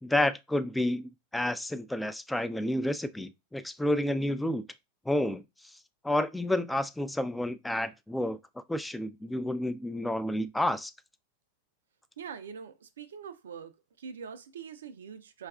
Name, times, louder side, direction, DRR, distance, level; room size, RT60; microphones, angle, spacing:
voice 1, 0.0-4.6 5.1-5.4 6.0-8.4 8.7-10.9, left 1 dB, 5° left, 0.3 m, -30 dB
voice 2, 12.2-13.7 14.0-15.5, right 6 dB, 80° right, 0.4 m, -43 dB
4.6 x 2.4 x 2.3 m
hypercardioid pair, 100°, 0 cm